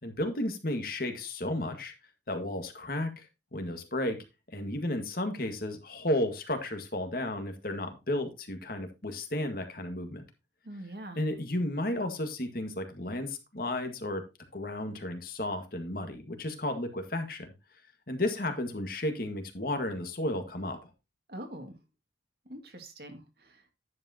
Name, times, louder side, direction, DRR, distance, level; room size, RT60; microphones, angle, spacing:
voice 1, 0.0-1.9 2.3-4.2 4.5-10.2 11.2-14.2 14.5-17.5 18.1-20.8, left 1 dB, 50° left, 6 dB, 1.9 m, -33 dB
voice 2, 10.7-11.2 21.3-21.8 22.5-23.5, right 1 dB, 55° right, 4 dB, 2.1 m, -43 dB
10.5 x 7.8 x 2.9 m, 0.25 s
head